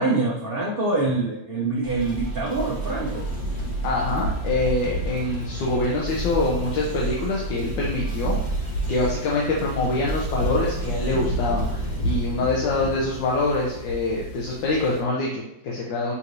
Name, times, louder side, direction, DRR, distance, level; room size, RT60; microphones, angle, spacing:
voice 1, 0.0-3.3, right 3 dB, 70° right, -4 dB, 0.5 m, -25 dB
sound 1, 1.8-12.3, right 3 dB, 25° right, 0.5 m, -32 dB
sound 2, 3.1-15.0, left 1 dB, 65° left, 1.1 m, -31 dB
voice 2, 3.8-8.4 8.9-16.1, left 2 dB, 85° left, -4 dB, 1.4 m, -25 dB
5.5 x 3.0 x 2.6 m, 0.85 s
omnidirectional pair, 2.0 m